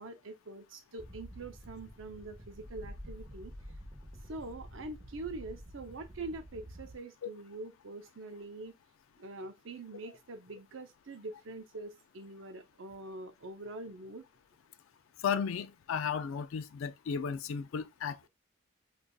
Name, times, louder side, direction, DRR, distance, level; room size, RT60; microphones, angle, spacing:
voice 1, 0.0-3.5 4.3-8.7 9.2-14.2, right 2 dB, 80° right, 0.6 m, -44 dB
sound 1, 1.0-6.9, equal, 30° right, 1.0 m, -49 dB
voice 2, 15.2-18.3, left 6 dB, 85° left, 0.4 m, -34 dB
5.1 x 2.4 x 2.3 m
head